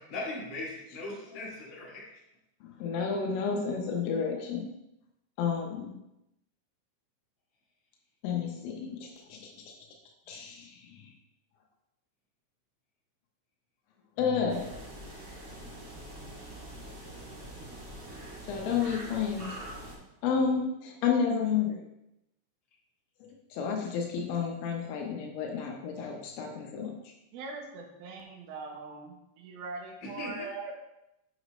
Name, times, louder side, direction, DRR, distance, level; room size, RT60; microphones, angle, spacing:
voice 1, 0.1-2.0 30.0-30.3, left 2 dB, 35° left, -6 dB, 1.9 m, -38 dB
voice 2, 2.6-4.7 5.4-5.9 8.2-9.5 10.3-11.1 14.2-14.6 18.5-19.6 20.2-21.8 23.2-27.1, left 6 dB, 80° left, 0 dB, 3.5 m, -31 dB
sound 1, 14.5-20.0, right 1 dB, 45° right, 1.6 m, -44 dB
voice 3, 27.3-30.7, right 3 dB, 80° right, 1 dB, 2.2 m, -41 dB
8.5 x 6.5 x 3.1 m, 0.87 s
omnidirectional pair, 5.8 m